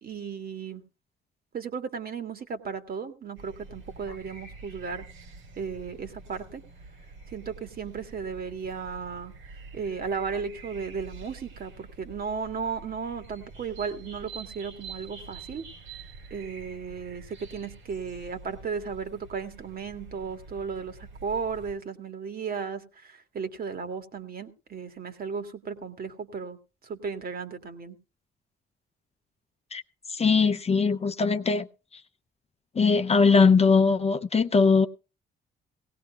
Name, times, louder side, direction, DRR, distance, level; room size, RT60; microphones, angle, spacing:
voice 1, 0.0-0.8 1.5-5.1 5.6-6.6 7.3-9.3 9.7-15.6 16.3-26.6 26.8-28.0, right 5 dB, 50° right, 1.9 m, -35 dB
sound 1, 3.4-21.8, right 3 dB, 85° right, 4.1 m, -47 dB
voice 2, 30.1-31.7 31.9-32.0 32.7-34.9, left 4 dB, 30° left, 0.7 m, -21 dB
18.0 x 17.0 x 2.3 m
cardioid pair, 90°, 20 cm